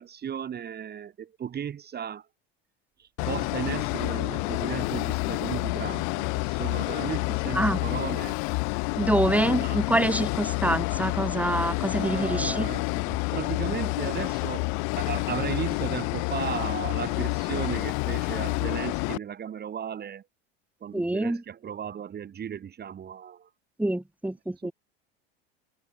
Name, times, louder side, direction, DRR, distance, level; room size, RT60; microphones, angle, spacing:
voice 1, 0.0-2.3 3.0-8.4 9.3-9.8 11.9-14.7 15.0-20.2 20.8-23.5 24.6-24.7, right 8 dB, 30° right, 3.8 m, -35 dB
sound 1, 3.2-19.2, left 37 dB, 65° left, 3.8 m, -29 dB
voice 2, 9.0-12.7 20.9-21.4 23.8-24.7, right 1 dB, 5° right, 5.5 m, -26 dB
hypercardioid pair, 95°, 31 cm